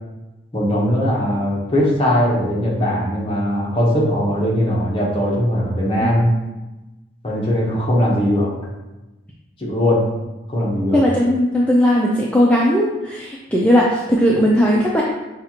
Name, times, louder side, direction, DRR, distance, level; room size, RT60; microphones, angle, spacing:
voice 1, 0.5-6.3 7.2-8.5 9.6-10.0 10.5-11.0, equal, 30° left, -4 dB, 0.9 m, -19 dB
voice 2, 6.0-6.4 10.9-15.0, equal, 5° left, -4 dB, 0.3 m, -17 dB
5.5 x 2.4 x 2.9 m, 1.1 s
head